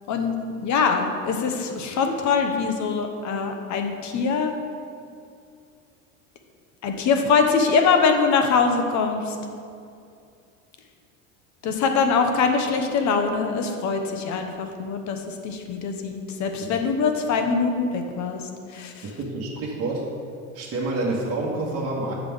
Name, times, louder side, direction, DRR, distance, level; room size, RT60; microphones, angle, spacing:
voice 1, 0.1-4.5 6.8-9.4 11.6-18.4 18.7-19.1, left 5 dB, 45° left, 5 dB, 1.0 m, -23 dB
voice 2, 19.0-20.1 20.5-22.1, right 2 dB, 35° right, -5 dB, 1.4 m, -28 dB
8.1 x 6.0 x 3.6 m, 2.4 s
hypercardioid pair, 90°, 41 cm